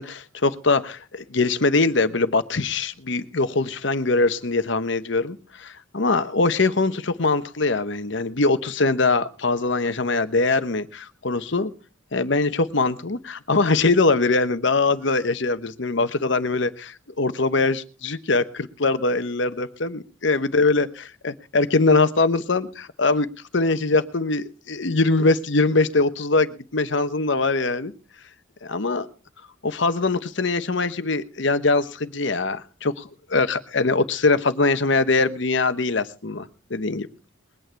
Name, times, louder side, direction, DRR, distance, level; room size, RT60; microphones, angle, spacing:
voice 1, 0.0-11.7 12.1-23.3 23.5-27.9 28.6-29.1 29.6-37.1, left 3 dB, 60° left, 11 dB, 1.0 m, -22 dB
22.0 x 9.1 x 4.6 m, 0.36 s
head